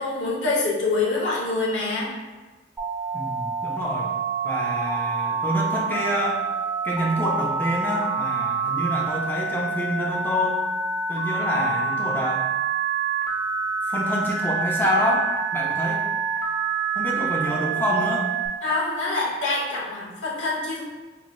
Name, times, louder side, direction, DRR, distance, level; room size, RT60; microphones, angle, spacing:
voice 1, 0.0-2.1 18.6-20.8, left 3 dB, 90° left, -4 dB, 1.0 m, -25 dB
Telephone, 2.8-18.5, right 5 dB, 5° right, 0.8 m, -27 dB
voice 2, 3.1-4.1 4.4-6.4 6.8-10.6 11.1-12.4 13.9-16.0 17.0-18.3, equal, 10° left, -3 dB, 0.4 m, -27 dB
5.0 x 3.0 x 2.2 m, 1.2 s
head